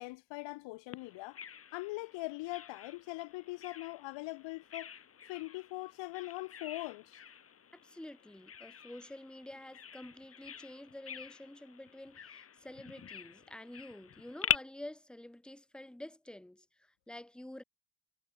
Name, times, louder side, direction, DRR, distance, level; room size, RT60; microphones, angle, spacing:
voice 1, 0.0-1.4 1.7-4.9 5.3-7.2, left 22 dB, 80° left, 1.2 m, -41 dB
Bird vocalization bird call bird song, 0.9-14.6, left 7 dB, 30° left, 1.5 m, -43 dB
voice 2, 7.7-17.6, left 1 dB, ahead, 1.5 m, -49 dB
cardioid pair, 110°, 44 cm